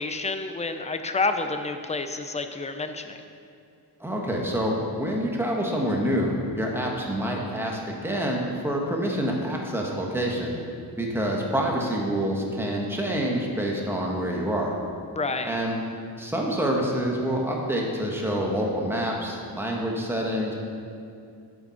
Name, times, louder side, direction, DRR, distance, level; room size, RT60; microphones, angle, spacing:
voice 1, 0.0-3.2 15.2-15.6, left 3 dB, 20° left, 7 dB, 0.5 m, -29 dB
voice 2, 4.0-10.6 11.0-14.8 15.4-15.8 16.2-20.5, equal, 5° right, -1 dB, 1.2 m, -27 dB
8.9 x 6.8 x 5.7 m, 2.4 s
wide cardioid pair, 160°, 39 cm